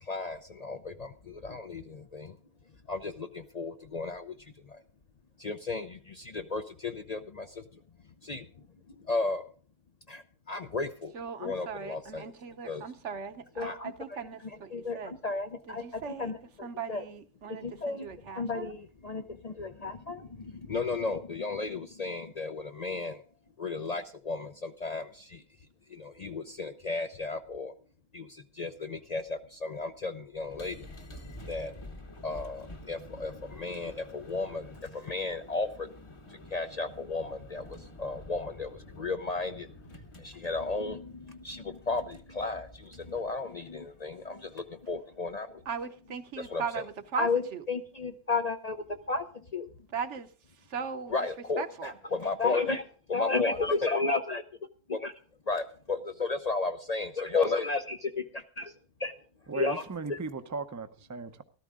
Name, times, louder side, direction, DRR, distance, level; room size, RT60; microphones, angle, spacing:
voice 1, 0.0-2.4 2.9-4.3 4.6-4.8 5.4-7.6 8.2-8.5 9.0-9.4 10.1-11.1 11.4-12.3 12.7-12.8 13.6-17.1 17.5-18.1 18.4-23.2 23.6-25.4 25.9-27.7 28.1-30.9 31.5-31.7 32.2-35.9 36.5-45.6 46.4-46.6 47.2-47.4 47.7-49.7 51.1-52.8 53.1-54.4 54.9-55.1 55.5-58.7 59.0-59.1 59.5-59.8 60.1-60.2, left 3 dB, 55° left, 0.4 m, -34 dB
voice 2, 11.1-15.1 15.7-16.3 16.6-18.7 45.7-47.6 49.9-50.3 50.7-51.1 51.6-51.9, right 6 dB, 55° right, 1.1 m, -38 dB
sound 1, 30.3-44.8, left 1 dB, 25° left, 0.9 m, -49 dB
voice 3, 59.5-61.4, right 4 dB, 20° right, 0.4 m, -37 dB
13.5 x 13.5 x 3.7 m
omnidirectional pair, 1.5 m